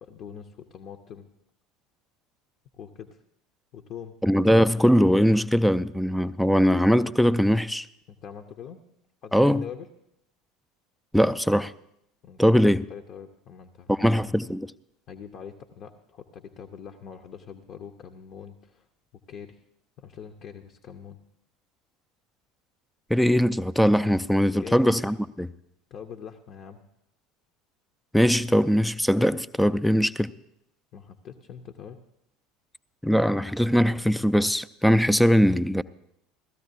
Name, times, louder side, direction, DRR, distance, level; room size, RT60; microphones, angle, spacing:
voice 1, 0.0-1.3 2.8-3.2 3.7-4.2 8.1-8.8 9.2-9.9 12.2-12.6 12.9-14.3 15.1-18.9 19.3-19.6 20.0-21.2 24.6-24.9 25.9-26.8 30.9-32.0, left 8 dB, 45° left, 0.7 m, -43 dB
voice 2, 4.2-7.9 9.3-9.6 11.1-11.7 12.4-12.8 13.9-14.7 23.1-25.5 28.1-30.3 33.0-35.8, equal, ahead, 0.3 m, -21 dB
16.5 x 13.5 x 2.7 m
figure-of-eight pair, 70°, 0 cm